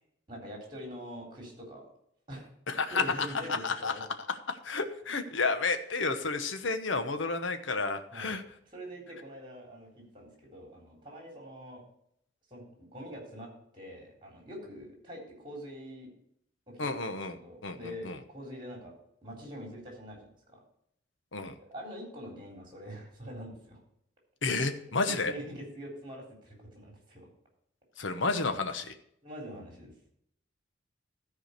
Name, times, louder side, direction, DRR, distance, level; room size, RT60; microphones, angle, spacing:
voice 1, 0.3-1.8 2.3-2.5 2.9-4.0 8.1-8.4 8.7-11.8 12.5-16.1 16.7-17.0 17.3-18.9 19.2-20.3 20.5-20.6 21.6-23.8 25.1-27.3 28.0-28.1 29.2-29.9, equal, 25° right, 0 dB, 3.7 m, -44 dB
voice 2, 2.7-3.0 3.6-3.9 4.5-8.4 16.8-18.2 21.3-21.5 24.4-25.3 28.0-28.9, left 3 dB, 80° left, 8 dB, 1.0 m, -31 dB
13.5 x 4.9 x 6.7 m, 0.72 s
head